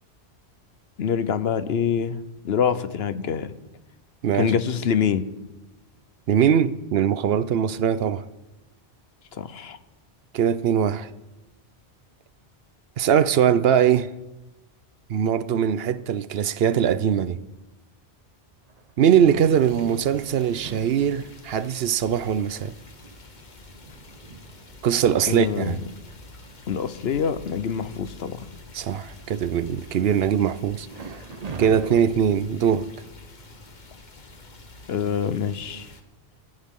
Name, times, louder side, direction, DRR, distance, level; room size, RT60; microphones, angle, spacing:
voice 1, 1.0-3.5 4.3-5.2 9.3-9.8 25.3-25.8 26.7-28.5 34.9-35.9, left 7 dB, 70° left, 1.0 m, -25 dB
voice 2, 4.2-4.5 6.3-8.2 10.3-11.1 13.0-14.1 15.1-17.4 19.0-22.7 24.8-25.8 28.7-30.9 31.6-32.9, right 8 dB, 70° right, 0.8 m, -21 dB
sound 1, 18.7-21.7 22.4-22.5 22.9-26.6 27.1-27.2 27.5-27.9 28.3-29.1 30.9-32.0, right 4 dB, 40° right, 0.8 m, -42 dB
sound 2, 19.4-36.0, left 2 dB, 45° left, 1.3 m, -47 dB
19.0 x 15.5 x 3.7 m
omnidirectional pair, 1.1 m